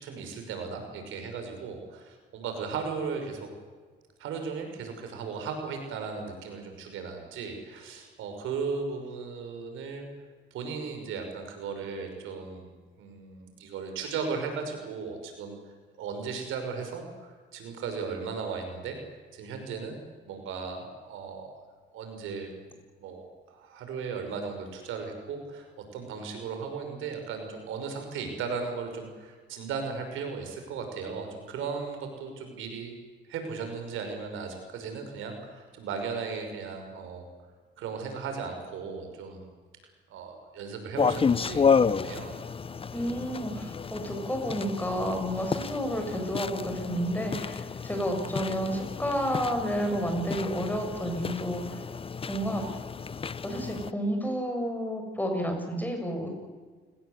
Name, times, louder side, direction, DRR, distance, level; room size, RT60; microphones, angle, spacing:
voice 1, 0.0-3.5 4.2-10.1 10.5-12.7 13.0-15.6 16.0-20.0 20.3-21.5 21.9-22.5 23.0-25.7 25.9-32.9 33.3-37.2 37.8-39.4 40.1-42.3, right 5 dB, 90° right, 5 dB, 5.6 m, -36 dB
sound 1, 41.0-53.9, left 6 dB, 30° left, 0.7 m, -31 dB
voice 2, 42.9-51.8 52.3-52.8 53.4-56.3, equal, 10° left, 3 dB, 7.5 m, -31 dB
29.5 x 19.0 x 8.2 m, 1.5 s
cardioid pair, 90°, 20 cm